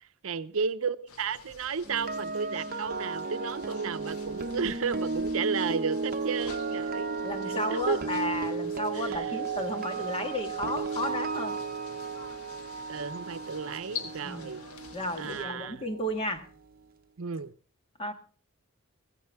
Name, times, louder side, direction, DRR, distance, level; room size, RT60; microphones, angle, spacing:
voice 1, 0.2-7.2 7.5-8.0 8.9-9.3 12.9-14.6 15.2-15.8 17.2-17.5, right 5 dB, 70° right, 12 dB, 0.7 m, -33 dB
sound 1, 1.1-15.4, left 5 dB, 85° left, 1.6 m, -47 dB
sound 2, 1.8-15.9 16.2-16.5, right 4 dB, 40° right, 0.9 m, -34 dB
voice 2, 7.2-11.6 14.2-14.5 14.9-16.5 18.0-18.1, left 1 dB, 25° left, 6 dB, 1.7 m, -33 dB
16.0 x 15.0 x 3.5 m, 0.39 s
head